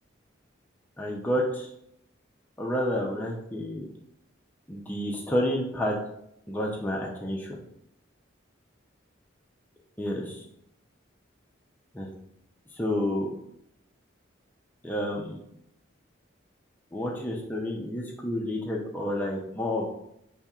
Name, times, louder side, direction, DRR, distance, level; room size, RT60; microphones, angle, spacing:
voice 1, 1.0-1.7 2.6-3.9 4.7-6.0 6.5-7.6 10.0-10.4 11.9-12.1 12.7-13.3 14.8-15.4 16.9-19.8, left 1 dB, 10° left, -2 dB, 0.4 m, -29 dB
5.5 x 2.7 x 2.3 m, 0.77 s
head